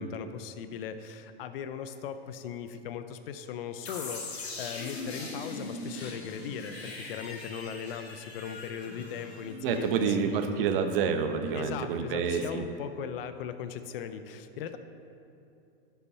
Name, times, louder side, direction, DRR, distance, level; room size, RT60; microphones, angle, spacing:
voice 1, 0.0-10.4 11.5-14.8, left 8 dB, 65° left, 10 dB, 0.7 m, -39 dB
sound 1, 3.8-10.6, left 2 dB, 90° left, 1.7 m, -41 dB
voice 2, 9.6-12.6, right 6 dB, 60° right, 7 dB, 0.9 m, -28 dB
12.0 x 5.6 x 4.2 m, 2.7 s
hypercardioid pair, 120°, 31 cm